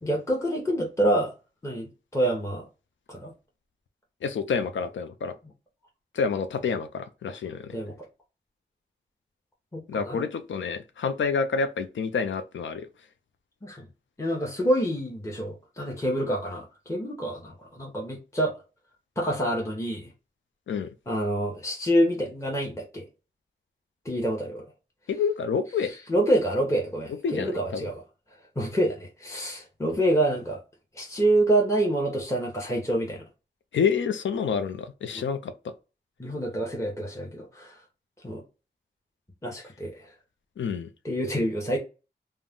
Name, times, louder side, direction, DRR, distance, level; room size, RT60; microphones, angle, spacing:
voice 1, 0.0-1.3 1.6-2.7 3.1-3.3 7.7-7.9 9.7-10.3 13.6-13.9 14.2-18.5 19.2-20.1 21.1-23.0 24.0-24.7 25.8-28.0 28.6-30.6 30.9-33.2 35.1-35.2 36.2-37.8 38.2-38.4 39.4-40.1 41.0-41.8, right 1 dB, 15° left, 0.8 m, -27 dB
voice 2, 4.2-5.3 6.1-7.8 9.9-12.9 20.7-20.9 25.1-25.9 27.2-27.9 33.7-35.5 40.6-40.9, left 5 dB, 90° left, 0.4 m, -28 dB
2.3 x 2.1 x 3.5 m
cardioid pair, 50°, 19 cm